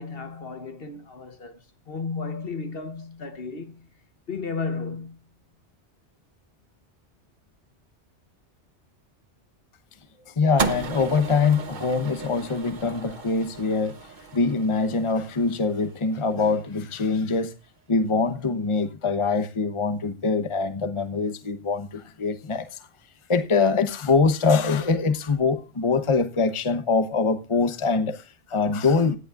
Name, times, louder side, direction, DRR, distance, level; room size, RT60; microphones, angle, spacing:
voice 1, 0.0-3.9 4.3-5.2, left 4 dB, 55° left, 1.3 m, -34 dB
voice 2, 10.3-14.0 14.3-17.5 17.9-22.7 23.3-29.2, left 4 dB, 30° left, 1.0 m, -23 dB
sound 1, 10.6-16.9, right 4 dB, 45° right, 1.1 m, -35 dB
17.5 x 11.0 x 2.4 m
omnidirectional pair, 1.2 m